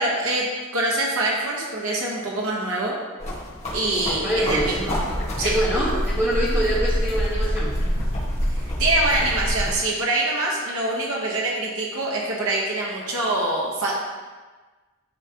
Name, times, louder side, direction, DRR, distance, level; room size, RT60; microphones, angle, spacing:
voice 1, 0.0-3.0 3.7-5.1 5.4-5.5 8.5-13.9, right 2 dB, 85° right, -3 dB, 1.3 m, -24 dB
sound 1, 3.2-9.8, equal, 30° left, 1.6 m, -26 dB
voice 2, 4.2-4.7 5.4-7.8, right 1 dB, 10° right, -14 dB, 1.8 m, -24 dB
11.0 x 3.7 x 2.9 m, 1.3 s
head